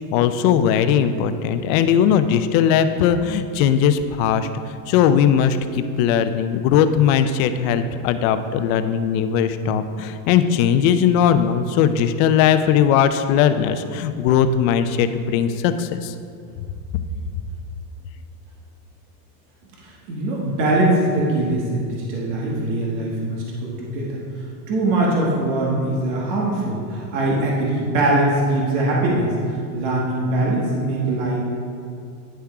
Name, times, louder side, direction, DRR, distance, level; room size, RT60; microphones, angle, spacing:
voice 1, 0.1-4.5 4.9-16.1, left 8 dB, 60° left, 10 dB, 0.6 m, -19 dB
voice 2, 19.8-24.2 24.7-31.4, right 2 dB, 50° right, -3 dB, 1.4 m, -22 dB
10.0 x 3.5 x 4.7 m, 2.4 s
supercardioid pair, 130°, 48 cm